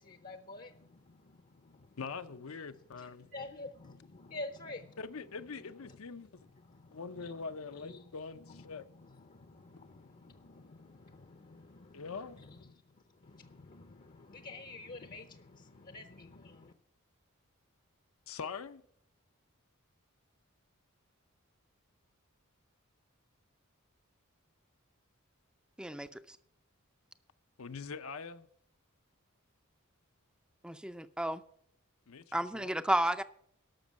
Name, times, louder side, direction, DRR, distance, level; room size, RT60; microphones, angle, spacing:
voice 1, 0.0-1.9 3.0-5.0 6.7-7.2 7.9-8.0 9.2-12.0 12.5-12.6 13.2-16.7, left 2 dB, 40° left, 0.6 m, -49 dB
voice 2, 2.0-3.3 5.0-6.3 6.9-8.9 11.9-12.4 18.3-18.8 27.6-28.5 32.1-32.8, left 5 dB, 75° left, 0.7 m, -43 dB
voice 3, 25.8-26.2 30.6-31.4 32.3-33.2, right 1 dB, 5° right, 0.4 m, -32 dB
12.5 x 6.1 x 7.5 m
head